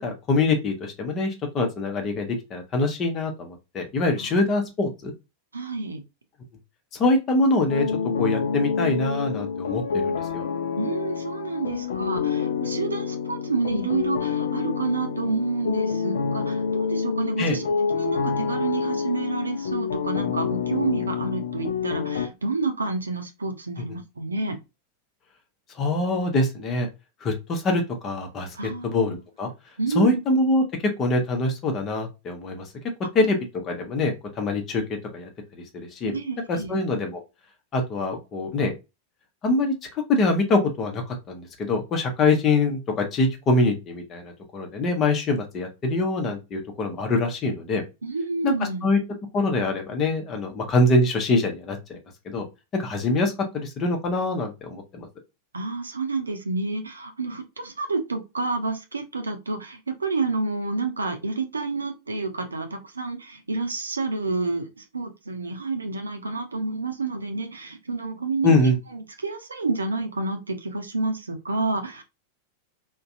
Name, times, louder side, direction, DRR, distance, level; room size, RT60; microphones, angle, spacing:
voice 1, 0.0-5.1 6.9-7.9 8.2-10.4 17.4-17.6 25.8-26.9 27.2-29.5 29.9-30.6 31.0-32.7 33.1-33.4 33.6-34.8 35.1-35.3 35.7-36.1 36.5-37.2 37.7-38.7 39.4-39.7 40.1-47.8 48.4-48.5 48.8-49.0 49.3-52.0 52.2-52.4 52.7-55.1 68.4-68.8, left 2 dB, 30° left, 0.8 m, -24 dB
voice 2, 5.5-6.0 10.8-17.7 17.9-24.6 28.5-29.1 29.8-30.2 36.1-36.8 48.0-48.9 55.5-68.5 68.9-72.0, right 3 dB, 75° right, 0.5 m, -29 dB
sound 1, 7.7-22.3, left 6 dB, 65° left, 0.3 m, -27 dB
2.6 x 2.2 x 2.5 m
figure-of-eight pair, 90°, 0 cm